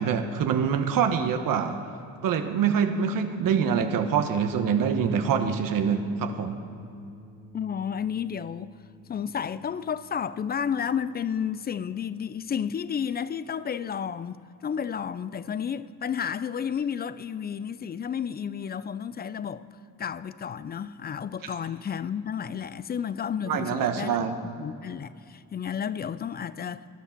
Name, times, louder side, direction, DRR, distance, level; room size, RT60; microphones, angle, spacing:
voice 1, 0.0-1.8 2.2-6.6 23.5-24.3, right 7 dB, 65° right, 1.1 m, -25 dB
sound 1, 4.9-13.4, left 1 dB, 15° right, 1.2 m, -49 dB
voice 2, 7.5-8.7 9.1-19.6 20.0-26.9, left 7 dB, 30° left, 0.4 m, -32 dB
19.0 x 10.0 x 5.9 m
cardioid pair, 110°, 36 cm